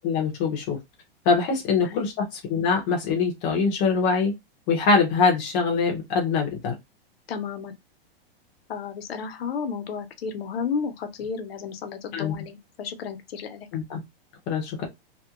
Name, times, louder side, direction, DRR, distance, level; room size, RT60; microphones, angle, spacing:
voice 1, 0.0-0.8 1.3-2.1 2.5-4.3 4.7-6.7 12.1-12.3 13.7-14.0 14.5-14.9, left 5 dB, 15° left, 0.5 m, -23 dB
voice 2, 7.3-7.7 8.7-13.7, left 6 dB, 75° left, 0.8 m, -32 dB
2.8 x 2.2 x 2.3 m
supercardioid pair, 175°, 30 cm